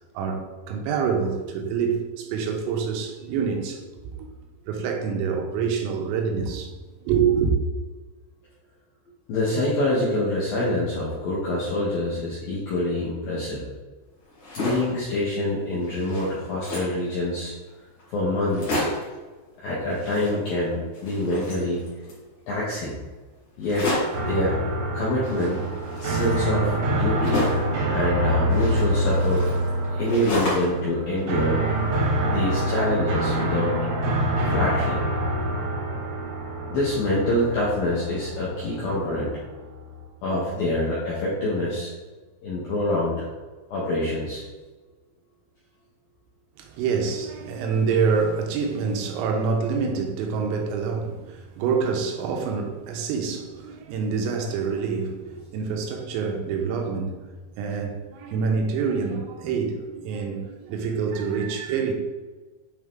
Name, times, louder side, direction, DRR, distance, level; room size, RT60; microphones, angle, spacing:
voice 1, 0.2-3.8 4.7-7.5 46.6-57.2 57.6-61.9, right 5 dB, 85° right, 3.6 m, -26 dB
voice 2, 9.3-13.6 14.6-17.5 18.1-18.9 19.6-21.8 22.5-23.0 23.6-24.6 24.9-25.6 26.0-27.5 27.9-29.5 30.0-31.6 32.3-33.7 34.4-35.0 36.7-39.4 40.2-41.9 42.4-43.3 43.7-44.4, left 1 dB, 75° left, 2.1 m, -26 dB
sound 1, 14.2-15.0 15.5-15.6 15.8-17.0 17.7-17.8 18.0-18.1 18.4-19.2 19.9-20.7 20.9-22.2 23.6-24.3 25.2-27.7 28.5-30.8 31.2-32.1, left 1 dB, 45° left, 2.5 m, -31 dB
sound 2, 24.1-40.1, right 1 dB, 70° right, 2.4 m, -26 dB
9.3 x 3.8 x 3.6 m
omnidirectional pair, 5.9 m